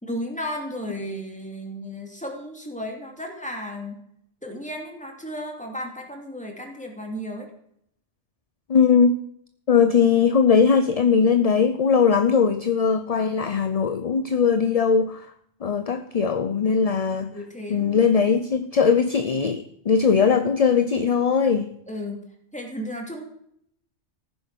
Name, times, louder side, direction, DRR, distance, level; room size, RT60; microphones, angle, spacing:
voice 1, 0.0-4.0 4.4-7.5 17.1-18.1 21.9-22.2 22.5-23.2, equal, 5° left, 1 dB, 2.6 m, -34 dB
voice 2, 8.7-9.1 9.7-15.2 15.6-17.3 17.7-21.7, left 6 dB, 40° left, 10 dB, 0.6 m, -20 dB
15.0 x 9.4 x 6.0 m, 0.70 s
omnidirectional pair, 1.2 m